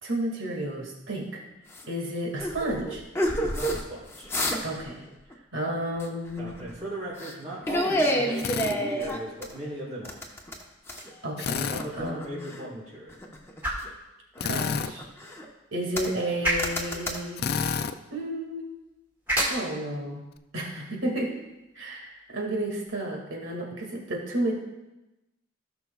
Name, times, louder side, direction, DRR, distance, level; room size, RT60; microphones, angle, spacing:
voice 1, 0.0-1.4 1.9-3.0 4.6-5.0 5.5-6.6 11.2-12.5 14.4-15.0 15.7-17.4 18.1-18.7 19.5-20.2 20.5-21.3 21.8-24.5, right 1 dB, 90° right, 0 dB, 2.1 m, -32 dB
sound 1, 1.7-1.9 2.4-3.8 4.1-4.8 5.1-5.3 6.0-6.8 7.2-7.4 7.6-9.6 10.1-11.1 11.5-12.7 13.1-13.9 14.4-15.5 16.0-16.3 16.6-17.2, equal, 15° left, 0.9 m, -29 dB
voice 2, 3.3-4.3 6.4-10.2 11.7-13.1, right 1 dB, 40° right, -12 dB, 3.5 m, -38 dB
Drill, 8.4-8.8 11.4-11.9 14.4-14.9 17.4-17.9, left 6 dB, 55° left, 0.4 m, -29 dB
sound 2, 10.8-22.9, right 1 dB, 10° right, 2.0 m, -36 dB
17.0 x 6.0 x 2.3 m, 0.98 s
head